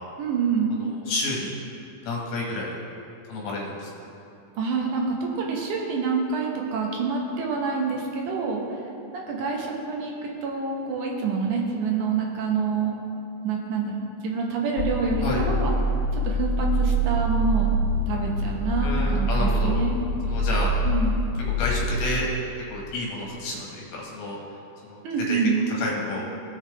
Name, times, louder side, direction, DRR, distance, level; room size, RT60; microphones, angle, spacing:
voice 1, 0.2-0.8 4.6-5.0 5.4-8.6 9.1-10.1 10.4-13.0 13.4-13.9 14.2-15.8 16.2-17.8 18.1-20.0 20.9-21.1 25.0-25.7, right 4 dB, 65° right, -1 dB, 2.1 m, -27 dB
voice 2, 0.7-1.5 2.0-2.7 3.3-3.9 15.2-15.4 18.8-19.8 20.2-20.7 21.5-22.3 22.6-24.4 24.8-25.0 25.3-25.4 25.8-26.2, left 2 dB, 75° left, -3 dB, 3.0 m, -30 dB
sound 1, 14.8-21.9, right 1 dB, 90° left, 2.5 m, -25 dB
16.5 x 5.7 x 3.3 m, 2.7 s
omnidirectional pair, 4.3 m